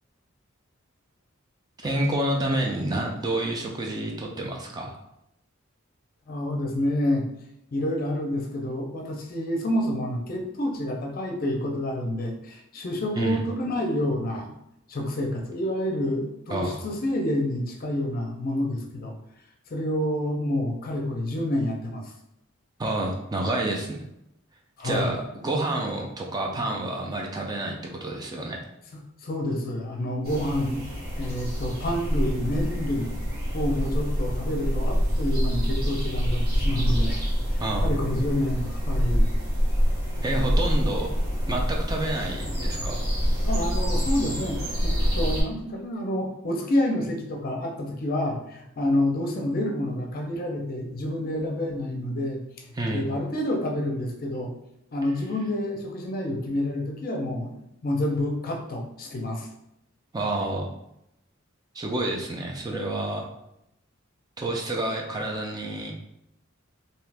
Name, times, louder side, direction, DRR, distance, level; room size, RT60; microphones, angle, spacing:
voice 1, 1.8-4.9 6.5-6.6 13.1-13.4 16.5-16.8 22.8-24.0 24.8-28.6 37.6-37.9 40.2-41.1 41.5-43.0 52.7-53.0 60.1-60.7 61.7-63.3 64.4-65.9, right 1 dB, 20° right, 0 dB, 0.4 m, -29 dB
voice 2, 6.3-7.3 7.7-14.5 14.9-19.2 19.7-22.1 24.8-25.2 29.2-30.8 31.2-33.2 33.5-37.2 37.5-39.3 43.4-52.7 52.9-54.5 54.9-59.5, left 1 dB, 45° left, 1 dB, 0.5 m, -28 dB
sound 1, 30.2-45.4, equal, 50° right, 1.2 m, -26 dB
2.7 x 2.4 x 3.3 m, 0.82 s
head